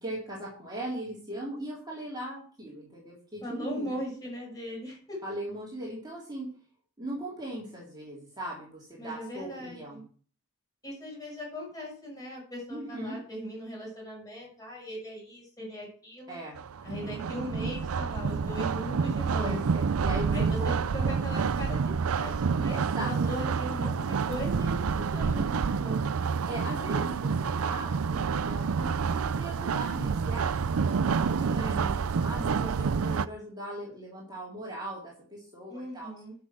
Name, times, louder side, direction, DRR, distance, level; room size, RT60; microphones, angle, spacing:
voice 1, 0.0-4.0 5.2-6.5 7.0-10.0 12.7-13.2 16.3-16.6 19.4-20.9 22.6-23.1 26.5-31.7 32.2-36.1, right 1 dB, 20° right, -5 dB, 3.5 m, -39 dB
voice 2, 3.4-5.2 9.0-10.0 10.8-16.4 16.8-19.6 20.3-26.1 31.4-32.0 32.6-33.4 35.7-36.3, equal, 15° left, -3 dB, 6.9 m, -39 dB
sound 1, 16.6-33.3, right 5 dB, 75° right, 0.5 m, -28 dB
11.5 x 6.3 x 6.2 m, 0.43 s
head